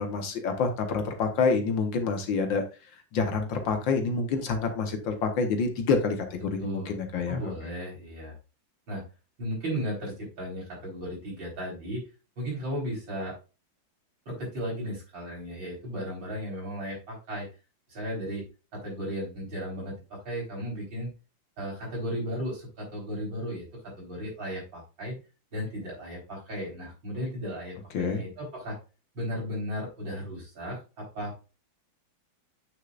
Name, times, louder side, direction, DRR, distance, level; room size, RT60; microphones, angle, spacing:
voice 1, 0.0-2.6 3.1-7.5 27.9-28.2, left 4 dB, 70° left, 1.8 m, -27 dB
voice 2, 6.6-7.0 7.3-8.3 8.9-9.0 9.4-12.0 12.4-13.3 14.3-17.5 17.9-18.4 18.7-21.1 21.6-25.2 25.5-28.8 29.1-30.8 31.1-31.3, equal, 70° right, 5.0 m, -35 dB
8.3 x 6.4 x 2.4 m
omnidirectional pair, 2.2 m